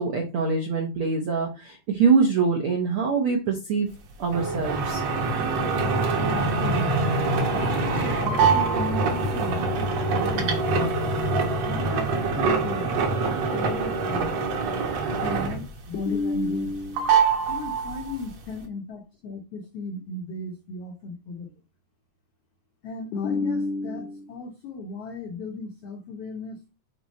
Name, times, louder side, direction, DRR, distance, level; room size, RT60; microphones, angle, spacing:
voice 1, 0.0-3.9 4.2-5.0, right 5 dB, 75° right, 1 dB, 1.2 m, -24 dB
sound 1, 4.3-15.8 16.1-16.7 17.0-18.3, right 4 dB, 60° right, 1.9 m, -24 dB
voice 2, 6.3-7.1 7.4-10.6 11.7-12.9 13.2-14.3 15.2-17.1 17.5-21.5 22.8-26.7, left 3 dB, 75° left, 2 dB, 1.4 m, -34 dB
6.8 x 4.4 x 4.1 m, 0.30 s
omnidirectional pair, 4.2 m